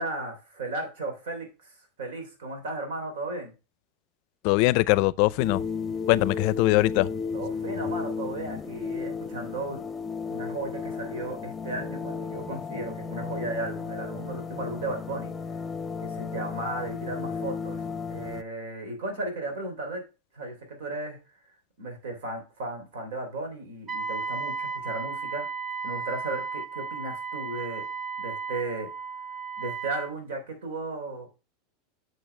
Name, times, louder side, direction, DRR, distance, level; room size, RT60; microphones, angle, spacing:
voice 1, 0.0-3.5 7.3-9.8 10.3-15.6 16.0-20.0 20.3-21.2 21.8-25.5 25.8-27.8 28.2-28.9 29.6-31.3, right 2 dB, 85° right, 3.1 m, -35 dB
voice 2, 4.4-5.6 6.1-7.1, left 20 dB, 60° left, 0.4 m, -22 dB
sound 1, 5.4-18.4, left 5 dB, 20° left, 0.6 m, -34 dB
Wind instrument woodwind instrument, 23.9-30.1, right 5 dB, 25° right, 1.1 m, -34 dB
8.0 x 6.4 x 3.3 m
supercardioid pair, 120°, 0 cm